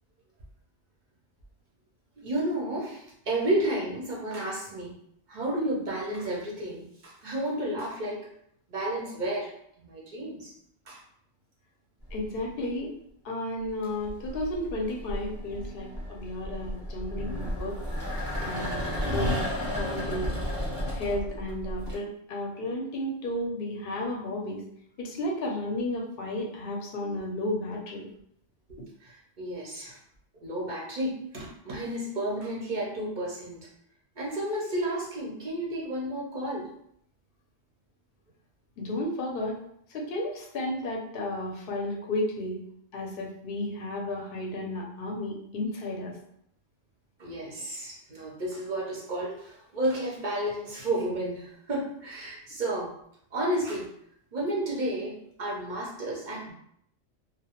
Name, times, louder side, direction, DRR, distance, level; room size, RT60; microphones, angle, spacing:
voice 1, 2.2-5.0 5.3-8.2 8.7-10.5 10.9-11.0 29.0-30.0 30.4-33.7 34.2-36.7 47.2-52.9 53.3-53.9 54.3-56.5, right 1 dB, 55° right, -4 dB, 0.5 m, -32 dB
voice 2, 12.1-12.9 13.2-17.8 18.4-19.5 19.8-20.4 20.9-24.6 25.0-28.1 38.8-39.6 39.9-42.6 42.9-46.1, left 1 dB, 60° left, -1 dB, 0.6 m, -33 dB
sound 1, 12.1-12.6 13.7-22.0, equal, 15° left, 0.8 m, -33 dB
2.2 x 2.1 x 2.8 m, 0.70 s
omnidirectional pair, 1.3 m